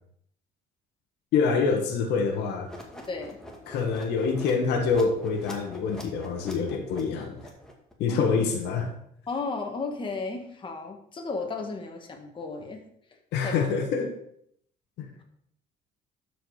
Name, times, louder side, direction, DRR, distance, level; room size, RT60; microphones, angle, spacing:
voice 1, 1.3-2.7 3.7-7.4 8.0-8.9 13.3-14.2 15.0-15.1, left 5 dB, 85° left, 4 dB, 1.6 m, -26 dB
sound 1, 2.7-7.9, left 1 dB, 5° left, 2.0 m, -45 dB
voice 2, 3.1-3.4 8.1-8.4 9.3-12.8 13.4-13.6, left 3 dB, 30° left, 3 dB, 1.8 m, -34 dB
12.0 x 5.1 x 4.9 m, 0.68 s
cardioid pair, 110°, 17 cm